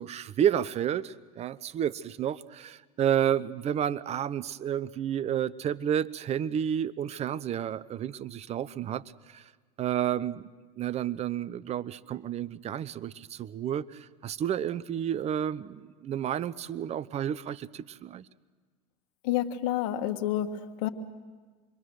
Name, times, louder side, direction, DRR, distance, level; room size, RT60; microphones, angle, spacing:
voice 1, 0.0-9.0 9.3-9.4 9.8-10.5 10.8-18.2, right 9 dB, 30° right, 18 dB, 0.7 m, -31 dB
voice 2, 19.2-20.5 20.8-20.9, left 12 dB, 65° left, 8 dB, 1.6 m, -28 dB
27.0 x 22.0 x 6.4 m, 1.4 s
hypercardioid pair, 95°, 20 cm